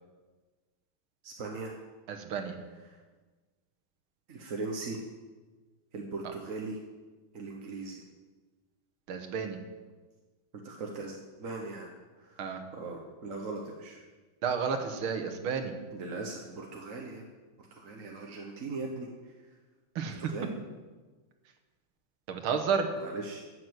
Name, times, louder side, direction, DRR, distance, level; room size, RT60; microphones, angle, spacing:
voice 1, 1.2-1.7 2.9-3.0 4.3-5.0 5.9-6.8 7.3-8.0 10.6-11.9 12.2-12.5 12.7-14.0 15.9-17.2 17.6-19.3 20.1-20.5 23.0-23.4, right 3 dB, 45° right, 1 dB, 1.4 m, -39 dB
voice 2, 2.1-2.6 9.1-9.6 12.4-12.6 14.4-15.7 20.0-20.3 22.3-22.9, right 6 dB, 80° right, 6 dB, 2.1 m, -31 dB
12.0 x 8.5 x 7.9 m, 1.3 s
omnidirectional pair, 2.3 m